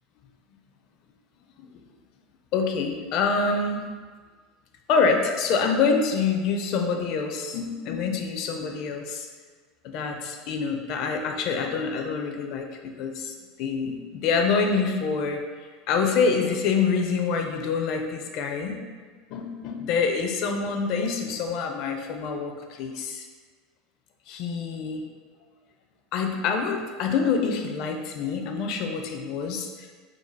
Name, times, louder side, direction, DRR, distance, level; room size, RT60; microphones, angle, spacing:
voice 1, 2.5-3.9 4.9-9.3 9.8-15.4 15.9-18.8 19.3-23.3 24.3-25.0 26.1-30.0, left 5 dB, 55° left, 4 dB, 0.5 m, -26 dB
4.5 x 4.0 x 2.2 m, 1.5 s
supercardioid pair, 140°, 0 cm